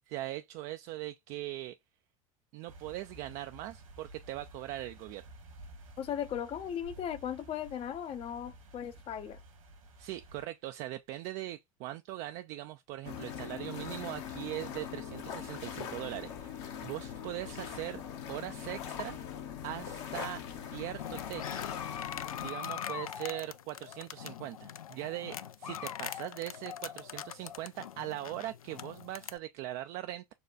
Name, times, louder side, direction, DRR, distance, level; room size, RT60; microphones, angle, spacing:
voice 1, 0.1-1.8 2.5-5.2 10.0-18.0 18.3-19.2 19.6-21.6 22.4-30.3, right 15 dB, 45° right, 0.4 m, -40 dB
sound 1, 2.7-10.5, right 1 dB, 70° right, 1.5 m, -53 dB
voice 2, 6.0-9.4, left 9 dB, 35° left, 0.6 m, -37 dB
sound 2, 13.0-22.5, left 8 dB, 55° left, 0.9 m, -41 dB
sound 3, 21.0-29.4, left 9 dB, 75° left, 0.4 m, -42 dB
6.8 x 2.3 x 2.4 m
figure-of-eight pair, 75°, 18 cm